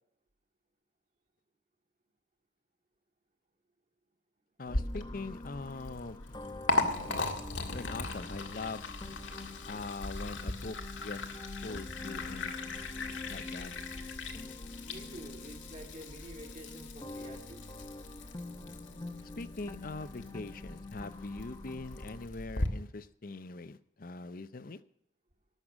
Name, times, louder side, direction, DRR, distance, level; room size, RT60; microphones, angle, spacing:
voice 1, 4.6-6.4 7.7-8.8 9.7-11.3 11.6-12.6 13.3-13.7 19.4-24.8, left 3 dB, 50° left, 15 dB, 0.6 m, -42 dB
Liquid, 4.7-22.7, left 2 dB, 80° left, 1.8 m, -38 dB
sound 1, 4.7-22.3, left 2 dB, 25° left, 0.8 m, -47 dB
voice 2, 14.8-17.6, right 1 dB, 40° right, 1 dB, 2.2 m, -48 dB
18.5 x 6.7 x 7.4 m, 0.75 s
head